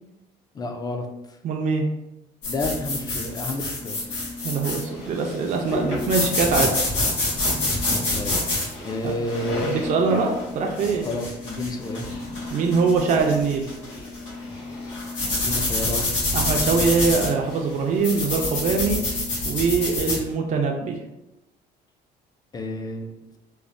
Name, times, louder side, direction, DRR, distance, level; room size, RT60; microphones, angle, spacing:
voice 1, 0.5-1.1 2.4-3.9 8.1-8.3 8.8-9.9 11.0-12.1 15.3-16.4 22.5-23.1, left 1 dB, 25° left, 5 dB, 0.3 m, -30 dB
voice 2, 1.4-1.9 4.4-6.8 9.0-9.1 9.6-11.1 12.5-13.7 16.3-19.0 19.4-21.0, right 4 dB, 50° right, 2 dB, 0.4 m, -23 dB
sound 1, 2.4-20.2, left 2 dB, 90° left, 1.2 m, -27 dB
3.1 x 2.0 x 2.5 m, 0.92 s
cardioid pair, 110°, 17 cm